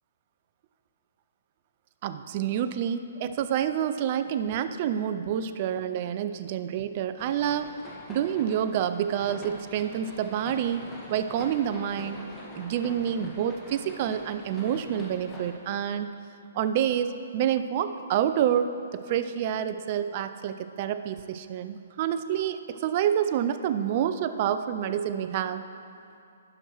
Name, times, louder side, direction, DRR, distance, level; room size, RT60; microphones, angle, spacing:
voice 1, 2.0-7.8 8.1-10.8 11.1-12.2 12.5-16.1 16.6-25.6, right 9 dB, 40° right, 11 dB, 0.5 m, -28 dB
sound 1, 7.2-15.5, left 1 dB, 10° left, 1.6 m, -44 dB
17.0 x 6.2 x 3.1 m, 2.6 s
hypercardioid pair, 140°, 0 cm